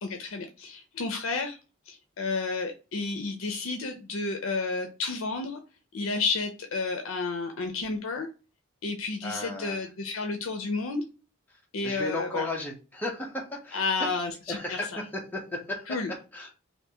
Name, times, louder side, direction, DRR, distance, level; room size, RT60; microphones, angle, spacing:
voice 1, 0.0-1.6 1.9-5.6 5.9-8.3 8.8-11.0 11.7-12.5 13.7-14.8 15.9-16.1, left 3 dB, 70° left, 5 dB, 0.5 m, -31 dB
voice 2, 9.2-9.8 11.5-14.1 14.5-16.5, left 2 dB, 10° left, -1 dB, 0.7 m, -35 dB
3.5 x 2.5 x 2.7 m, 0.32 s
head